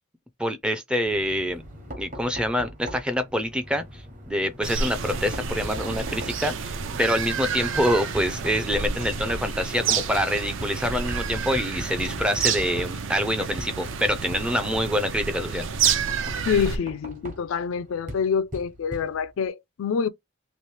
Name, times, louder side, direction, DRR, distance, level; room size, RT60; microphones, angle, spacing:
voice 1, 0.4-1.6 2.0-15.7, equal, 5° right, 0.4 m, -26 dB
Knock, 1.1-19.5, equal, 40° right, 1.0 m, -41 dB
sound 1, 4.6-16.8, right 6 dB, 65° right, 0.5 m, -29 dB
voice 2, 16.5-20.1, left 6 dB, 75° left, 0.4 m, -26 dB
3.1 x 2.7 x 3.2 m
head